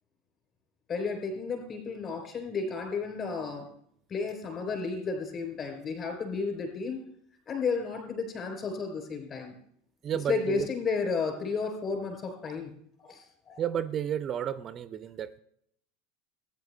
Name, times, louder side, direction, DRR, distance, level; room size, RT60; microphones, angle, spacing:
voice 1, 0.9-3.7 4.1-7.1 7.5-9.6 10.3-12.7 13.0-13.6, left 4 dB, 35° left, 3 dB, 3.6 m, -32 dB
voice 2, 10.0-10.7 13.6-15.4, right 9 dB, 35° right, 14 dB, 0.4 m, -32 dB
18.5 x 9.0 x 2.2 m, 0.70 s
figure-of-eight pair, 80°, 0 cm